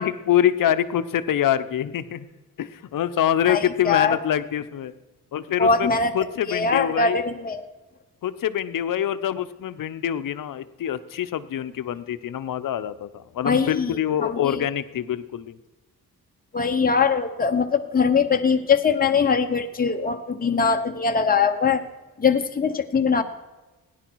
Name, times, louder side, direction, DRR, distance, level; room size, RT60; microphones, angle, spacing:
voice 1, 0.0-2.3 2.6-4.9 5.3-5.9 6.1-7.2 8.2-15.6, left 10 dB, 65° left, 12 dB, 0.8 m, -25 dB
voice 2, 3.5-4.2 5.6-6.1 6.5-7.6 13.4-14.6 16.5-21.8 22.2-23.2, left 5 dB, 25° left, 5 dB, 1.0 m, -22 dB
17.5 x 10.5 x 4.6 m, 1.2 s
cardioid pair, 115°, 35 cm